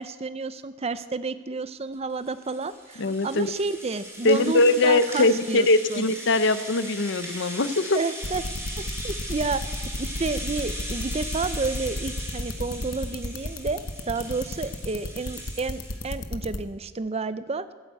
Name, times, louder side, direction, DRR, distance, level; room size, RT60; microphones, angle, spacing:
voice 1, 0.0-6.1 7.9-8.4 8.8-9.6 10.0-17.7, right 3 dB, 30° right, 14 dB, 0.6 m, -31 dB
Rattle (instrument), 1.9-16.1, equal, 15° right, 4.0 m, -39 dB
voice 2, 3.0-3.5 4.2-8.0, left 2 dB, 65° left, 12 dB, 0.7 m, -21 dB
sound 1, 8.2-16.6, left 2 dB, 85° left, 1.1 m, -31 dB
16.0 x 8.9 x 8.2 m, 1.4 s
head